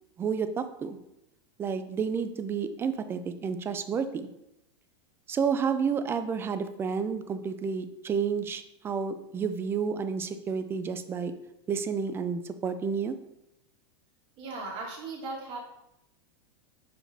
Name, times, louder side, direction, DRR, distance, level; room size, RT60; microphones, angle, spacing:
voice 1, 0.2-1.0 1.6-4.3 5.3-11.3 11.7-13.2, right 6 dB, 15° right, 10 dB, 0.4 m, -30 dB
voice 2, 14.4-15.7, right 3 dB, 35° right, -2 dB, 2.0 m, -37 dB
5.8 x 4.7 x 3.4 m, 0.86 s
supercardioid pair, 140°, 14 cm